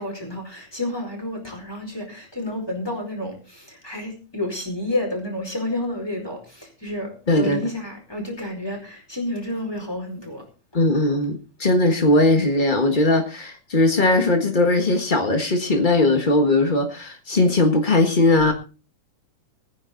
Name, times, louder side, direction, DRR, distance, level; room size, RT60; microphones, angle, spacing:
voice 1, 0.0-10.4, left 1 dB, 5° left, 1 dB, 4.5 m, -30 dB
voice 2, 7.3-7.6 10.7-18.5, left 2 dB, 75° left, 5 dB, 0.4 m, -19 dB
18.5 x 10.0 x 3.9 m, 0.35 s
omnidirectional pair, 3.6 m